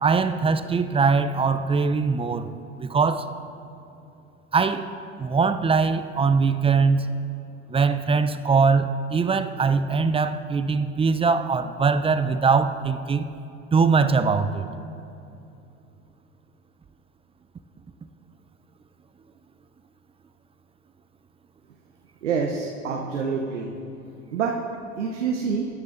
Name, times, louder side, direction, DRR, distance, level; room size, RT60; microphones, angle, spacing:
voice 1, 0.0-2.5 2.8-3.3 4.5-4.9 5.2-7.1 7.7-13.3 13.7-14.7, right 5 dB, 15° right, 0.4 m, -22 dB
voice 2, 22.2-23.7 24.3-24.6 25.0-25.7, right 5 dB, 85° right, 0.8 m, -26 dB
19.5 x 9.7 x 2.5 m
hypercardioid pair, 70°, 35 cm